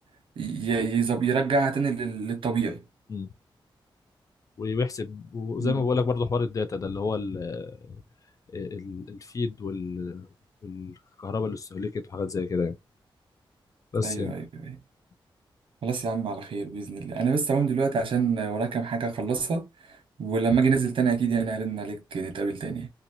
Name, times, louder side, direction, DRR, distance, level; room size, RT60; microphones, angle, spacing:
voice 1, 0.4-2.8 5.6-5.9 14.0-14.8 15.8-19.7 20.2-22.9, right 5 dB, 75° right, 1.0 m, -26 dB
voice 2, 4.6-7.7 8.5-10.3 10.6-10.9 11.2-12.8 13.9-14.3, left 4 dB, 40° left, 0.4 m, -29 dB
2.7 x 2.5 x 2.7 m
wide cardioid pair, 160°, 9 cm